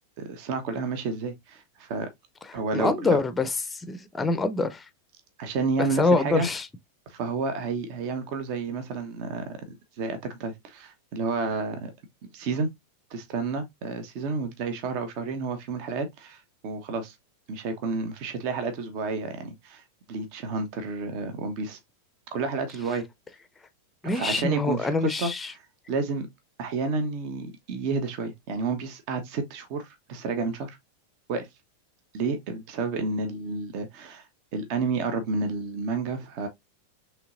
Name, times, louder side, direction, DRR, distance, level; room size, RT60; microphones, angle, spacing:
voice 1, 0.2-2.1 2.5-3.2 5.4-6.5 7.1-11.9 12.3-12.7 13.1-17.1 17.5-19.8 20.1-21.8 22.3-23.0 24.1-25.3 25.9-26.3 26.6-30.8 31.3-31.5 32.1-34.3 34.5-36.5, right 4 dB, 45° right, 1.1 m, -30 dB
voice 2, 2.7-4.8 5.8-6.7 24.0-25.5, left 3 dB, 10° left, 0.6 m, -25 dB
5.8 x 3.3 x 2.5 m
figure-of-eight pair, 90°, 0 cm